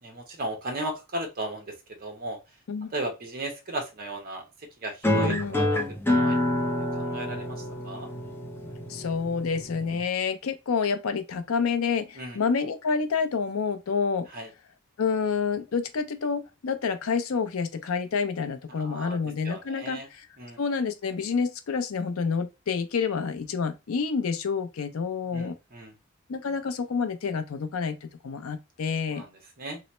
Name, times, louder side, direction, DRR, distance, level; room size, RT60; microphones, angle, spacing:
voice 1, 0.0-1.7 2.0-2.4 2.9-4.4 4.8-5.8 6.1-6.4 6.9-8.1 12.2-12.4 14.3-14.5 18.8-19.2 19.4-20.1 20.4-20.6 25.3-25.9 29.1-29.3 29.6-29.8, right 1 dB, 45° right, 0.9 m, -35 dB
sound 1, 5.0-10.0, left 1 dB, 10° left, 0.5 m, -27 dB
voice 2, 5.2-5.6 8.9-14.3 15.0-20.3 20.6-25.6 26.3-29.2, left 5 dB, 70° left, 0.5 m, -28 dB
3.0 x 2.0 x 4.1 m
head